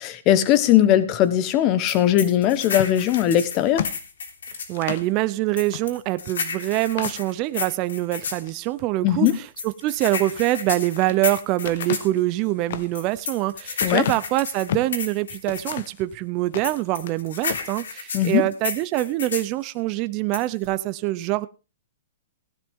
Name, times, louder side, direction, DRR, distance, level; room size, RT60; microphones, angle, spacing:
voice 1, 0.0-3.8 9.0-9.4 13.8-14.0 18.1-18.5, left 11 dB, 25° left, 14 dB, 1.1 m, -19 dB
sound 1, 1.9-4.8 5.6-8.4 9.3-12.1 12.9-15.8 16.6-19.5 20.3-20.7, left 5 dB, 90° left, 3.3 m, -32 dB
sound 2, 2.6-5.1 5.7-5.9 6.2-6.3 6.8-7.7 8.2-8.7 10.5-11.2 11.6-15.0 15.5-16.0 16.4-17.2 17.4-17.7, left 10 dB, 50° left, 1.0 m, -33 dB
voice 2, 4.7-21.5, right 17 dB, 25° right, 14 dB, 0.5 m, -25 dB
16.0 x 11.0 x 3.6 m, 0.31 s
hypercardioid pair, 170°, 0 cm